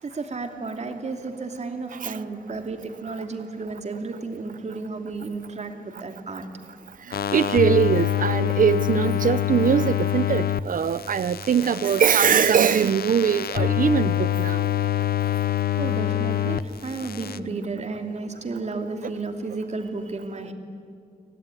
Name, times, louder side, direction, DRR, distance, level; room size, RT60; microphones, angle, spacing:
voice 1, 0.0-6.4 15.8-20.5, right 3 dB, 45° right, 2.8 m, -32 dB
sound 1, 7.1-10.6 10.9-16.6 16.9-17.4, left 11 dB, 90° left, 0.8 m, -25 dB
voice 2, 7.1-14.7, right 7 dB, 60° right, 0.7 m, -22 dB
30.0 x 19.0 x 9.9 m
wide cardioid pair, 125°, 15 cm